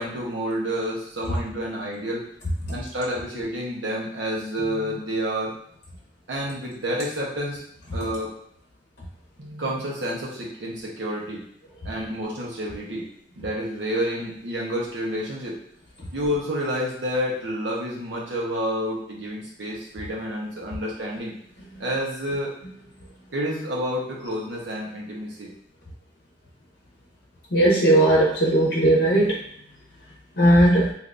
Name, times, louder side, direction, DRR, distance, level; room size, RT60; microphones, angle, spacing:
voice 1, 0.0-2.3 2.7-5.5 6.3-7.6 7.9-8.3 9.4-11.4 11.8-13.1 13.4-15.6 16.1-21.3 21.8-22.5 23.3-25.5, equal, 90° right, -4 dB, 1.0 m, -29 dB
voice 2, 27.5-29.4 30.4-30.9, right 1 dB, 60° left, -5 dB, 0.8 m, -17 dB
3.3 x 2.7 x 2.6 m, 0.70 s
head